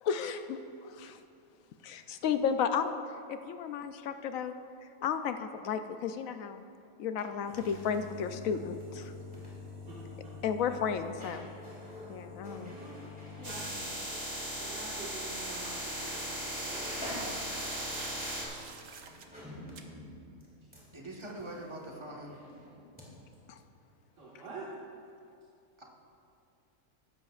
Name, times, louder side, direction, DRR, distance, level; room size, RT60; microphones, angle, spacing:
voice 1, 0.0-0.6 1.0-1.2 1.8-3.0 3.3-4.5 5.0-6.6 7.0-9.1 10.4-11.5 12.1-12.7, left 7 dB, 75° left, 8 dB, 1.0 m, -33 dB
sound 1, 7.1-14.9 15.2-15.3 16.1-16.3 16.5-23.1 23.3-23.4, left 2 dB, 5° right, 2.6 m, -47 dB
voice 2, 9.9-10.4 12.7-12.9 13.4-13.6 14.6-16.9 24.2-24.7, right 3 dB, 60° right, -7 dB, 1.9 m, -46 dB
sound 2, 13.4-18.4, equal, 45° right, 2.3 m, -37 dB
sound 3, 14.9-19.3 19.8-19.9, right 6 dB, 85° right, 1.3 m, -48 dB
voice 3, 20.9-22.4 25.8-25.9, right 1 dB, 20° right, -2 dB, 1.3 m, -43 dB
15.5 x 12.0 x 2.4 m, 2.5 s
omnidirectional pair, 1.5 m